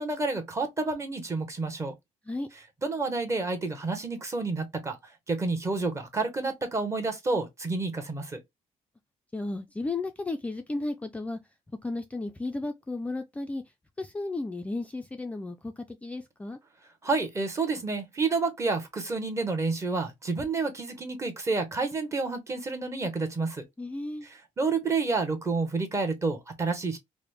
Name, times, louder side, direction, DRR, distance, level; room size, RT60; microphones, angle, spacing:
voice 1, 0.0-1.9 2.8-8.4 17.0-23.6 24.2-27.0, right 3 dB, 25° right, 0.9 m, -29 dB
voice 2, 9.3-11.4 11.8-13.6 14.0-16.6 23.8-24.3, left 2 dB, 10° left, 0.4 m, -34 dB
4.9 x 2.1 x 3.0 m
cardioid pair, 150°, 12 cm